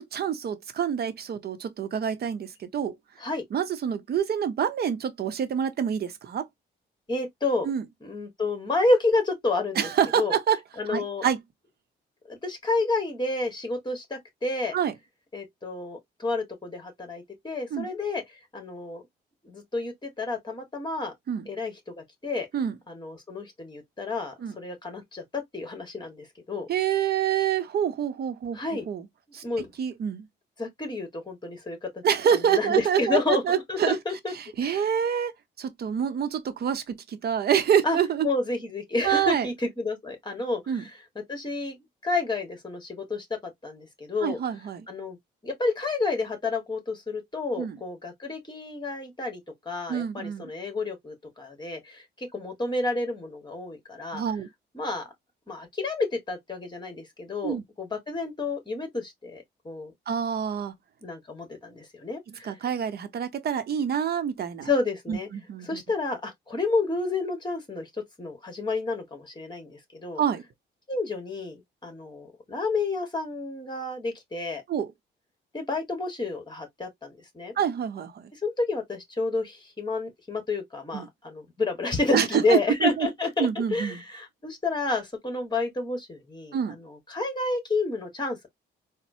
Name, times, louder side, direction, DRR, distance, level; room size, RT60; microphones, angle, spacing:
voice 1, 0.0-2.9 3.5-6.5 7.6-7.8 9.8-10.6 10.9-11.4 14.7-14.9 17.7-17.9 21.3-21.4 22.5-22.7 24.4-24.5 26.7-28.6 28.9-29.1 29.3-29.4 29.8-30.2 32.0-34.0 34.6-35.3 35.6-38.3 39.0-39.5 40.7-40.8 44.2-44.9 47.6-47.8 49.9-50.5 54.1-54.5 57.4-57.6 60.1-60.7 62.4-64.7 65.1-65.8 70.2-70.4 74.7-74.9 77.6-78.2 80.9-81.0 82.1-83.1 83.4-84.0 86.5-86.8, right 8 dB, 55° right, 0.8 m, -26 dB
voice 2, 7.1-7.7 8.0-9.9 10.1-10.3 10.8-11.2 12.3-14.7 15.3-18.2 18.5-19.0 19.4-21.1 21.4-22.5 22.9-26.7 28.5-28.9 29.4-29.7 30.6-32.0 32.3-34.3 34.6-34.9 37.8-38.0 38.2-44.4 44.9-45.2 45.4-49.4 49.6-54.2 54.7-55.1 55.5-59.9 61.0-62.5 64.6-65.3 65.6-67.9 68.2-70.2 70.9-74.6 75.5-77.5 78.3-88.5, left 3 dB, 20° left, 1.5 m, -30 dB
4.0 x 2.1 x 2.7 m
cardioid pair, 90°, 20 cm